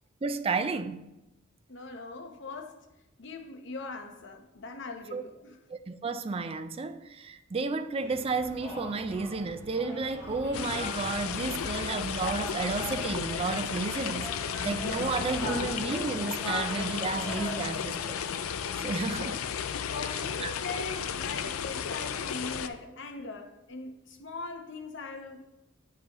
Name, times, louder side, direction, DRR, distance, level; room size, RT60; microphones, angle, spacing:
voice 1, 0.2-1.1 5.1-5.2 5.7-18.3 18.7-19.4 20.4-20.5, right 3 dB, 25° right, 0.3 m, -32 dB
voice 2, 1.7-2.8 3.2-5.6 19.9-25.4, left 3 dB, 60° left, 0.8 m, -40 dB
sound 1, 8.0-17.6, equal, 10° left, 2.9 m, -41 dB
sound 2, 10.5-22.7, left 7 dB, 90° left, 0.4 m, -34 dB
8.4 x 7.3 x 3.0 m
head